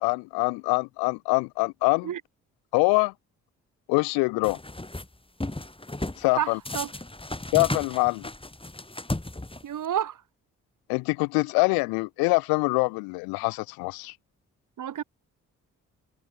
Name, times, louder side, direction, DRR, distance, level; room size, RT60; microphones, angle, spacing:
voice 1, 0.0-2.1 2.7-3.1 3.9-4.6 6.2-6.6 7.5-8.3 10.9-14.1, left 29 dB, 85° left, 0.5 m, -24 dB
sound 1, 4.4-5.1 5.4-6.2 6.7-9.9, left 2 dB, 15° left, 5.8 m, -34 dB
voice 2, 6.4-6.9 9.6-10.2 14.8-15.0, right 10 dB, 60° right, 1.7 m, -30 dB
hypercardioid pair, 45°, 35 cm